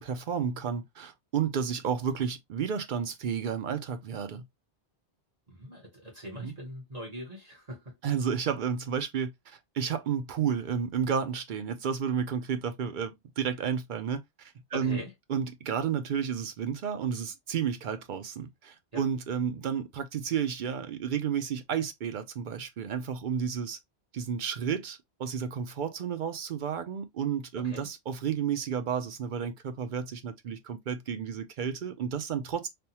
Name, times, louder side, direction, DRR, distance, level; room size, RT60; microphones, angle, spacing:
voice 1, 0.0-4.4 6.4-6.5 8.0-15.0 15.3-23.8 24.1-32.7, right 7 dB, 55° right, 0.6 m, -32 dB
voice 2, 5.5-8.0 14.7-15.1 18.9-19.0 27.5-27.9, equal, 35° right, 1.2 m, -42 dB
3.4 x 2.2 x 2.7 m
omnidirectional pair, 1.2 m